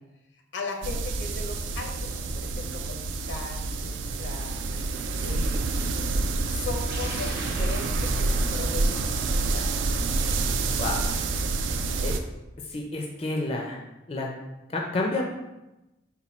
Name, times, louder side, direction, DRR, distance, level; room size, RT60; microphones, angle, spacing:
voice 1, 0.5-4.5 5.2-5.7 6.5-9.7 11.7-12.1, left 3 dB, 75° left, 2 dB, 0.6 m, -38 dB
sound 1, 0.8-12.2, right 3 dB, 80° right, 0.3 m, -28 dB
sound 2, 6.9-11.5, right 1 dB, 50° right, 0.9 m, -41 dB
voice 2, 10.8-11.1 12.0-12.2 12.7-13.8 14.1-14.3 14.7-15.2, left 2 dB, 30° left, 1 dB, 0.4 m, -29 dB
4.2 x 2.2 x 4.1 m, 0.96 s
head